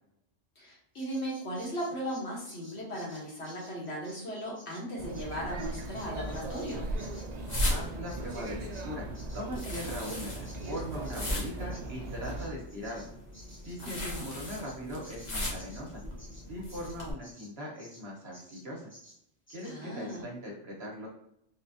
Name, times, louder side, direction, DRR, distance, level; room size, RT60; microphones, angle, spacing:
voice 1, 0.6-6.8 13.8-14.2 19.6-20.2, equal, 60° left, -4 dB, 1.4 m, -37 dB
Bird vocalization bird call bird song, 1.0-8.9 9.1-18.0 18.3-18.6 18.9-19.2 19.5-19.8 20.1-20.2, equal, 10° left, 1.0 m, -54 dB
sound 1, 5.0-12.5, right 2 dB, 80° right, 0.3 m, -39 dB
sound 2, 6.2-17.1, left 1 dB, 40° left, 0.9 m, -38 dB
voice 2, 7.7-9.1 9.3-13.0 13.6-16.0 16.5-18.9 19.5-21.1, equal, 55° right, -2 dB, 1.3 m, -40 dB
3.9 x 2.4 x 2.7 m, 0.74 s
omnidirectional pair, 1.3 m